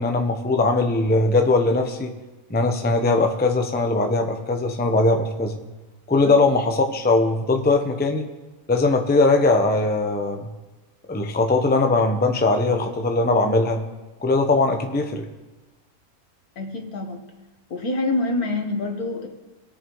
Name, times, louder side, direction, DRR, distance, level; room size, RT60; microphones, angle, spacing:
voice 1, 0.0-2.1 2.5-5.6 6.1-8.2 8.7-10.5 11.1-13.8 14.2-15.3, left 3 dB, 10° left, 4 dB, 0.5 m, -20 dB
voice 2, 16.6-17.2 17.7-19.3, left 2 dB, 85° left, 3 dB, 1.9 m, -26 dB
20.5 x 6.9 x 3.1 m, 1.1 s
omnidirectional pair, 1.5 m